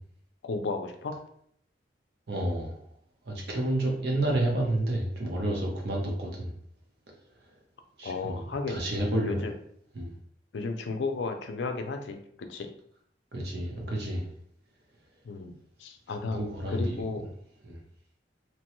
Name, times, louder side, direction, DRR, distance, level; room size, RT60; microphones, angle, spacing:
voice 1, 0.4-1.2 8.0-8.8 9.2-9.5 10.5-12.7 15.2-16.4 16.7-17.3, left 3 dB, 85° left, 5 dB, 0.4 m, -33 dB
voice 2, 2.3-2.8 3.3-6.5 8.0-9.4 9.9-10.1 13.3-14.2 16.3-17.0 17.6-17.8, right 1 dB, 65° right, -1 dB, 0.8 m, -30 dB
3.0 x 2.2 x 3.0 m, 0.66 s
head